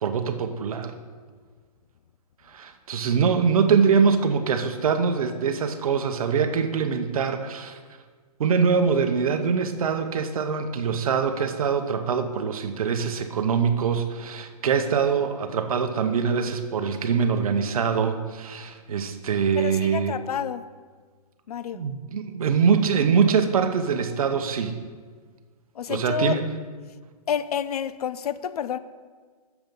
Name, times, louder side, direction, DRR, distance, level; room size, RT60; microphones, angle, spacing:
voice 1, 0.0-0.9 2.5-7.8 8.4-20.2 21.7-24.8 25.9-26.4, right 6 dB, 60° right, 7 dB, 0.9 m, -23 dB
voice 2, 19.6-20.6 21.5-21.8 25.8-26.4 27.3-28.8, left 8 dB, 70° left, 15 dB, 0.5 m, -29 dB
7.7 x 7.1 x 5.3 m, 1.6 s
hypercardioid pair, 160°, 20 cm